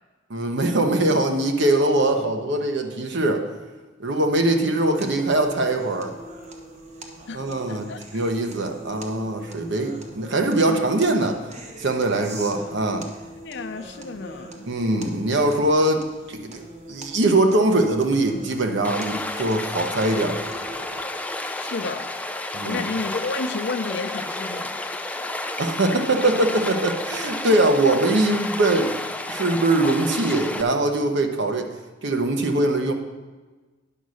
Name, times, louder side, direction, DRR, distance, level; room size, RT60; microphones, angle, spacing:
voice 1, 0.3-3.5 4.0-6.1 7.3-7.8 8.1-11.4 11.8-13.1 14.6-16.6 16.9-20.5 22.5-22.8 25.6-29.0 29.3-31.7 32.0-32.9, right 2 dB, 65° right, 5 dB, 1.0 m, -22 dB
sound 1, 5.0-21.0, right 1 dB, 35° right, 1.1 m, -42 dB
voice 2, 7.3-8.2 13.4-14.7 21.5-22.1 22.6-24.8, left 3 dB, 65° left, 8 dB, 0.6 m, -31 dB
Stream, 18.8-30.6, left 2 dB, 10° left, 0.4 m, -31 dB
10.0 x 5.4 x 6.4 m, 1.3 s
head